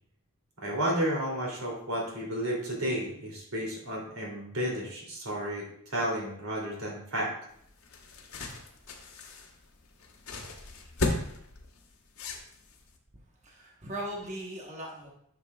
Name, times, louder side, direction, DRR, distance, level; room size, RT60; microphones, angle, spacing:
voice 1, 0.6-7.3, equal, 90° right, -3 dB, 2.8 m, -32 dB
sound 1, 7.5-12.9, left 2 dB, 75° left, 1.2 m, -36 dB
voice 2, 13.4-15.1, right 1 dB, 35° right, -1 dB, 1.1 m, -39 dB
10.5 x 6.5 x 2.3 m, 0.69 s
head